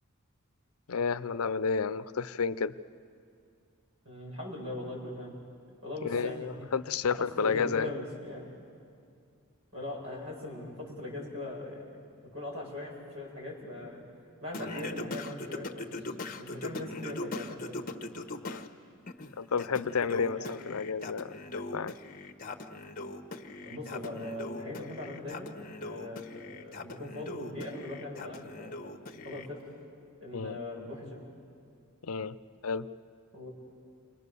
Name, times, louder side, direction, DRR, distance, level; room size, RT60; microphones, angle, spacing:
voice 1, 0.9-2.7 6.0-7.9 18.4-18.6 19.4-21.9 30.3-30.6 32.0-32.3 32.6-32.9, left 5 dB, 85° left, 14 dB, 0.6 m, -31 dB
voice 2, 4.0-5.3 5.8-6.5 7.2-8.5 9.7-11.9 12.3-14.0 14.4-17.8 20.3-20.6 23.6-25.5 25.8-28.9 29.2-29.6 30.2-31.2 33.3-33.5, left 1 dB, 70° right, -3 dB, 7.6 m, -40 dB
Singing, 14.5-18.7 19.1-29.5, left 2 dB, 40° left, 1.3 m, -41 dB
29.0 x 24.0 x 6.9 m, 2.3 s
head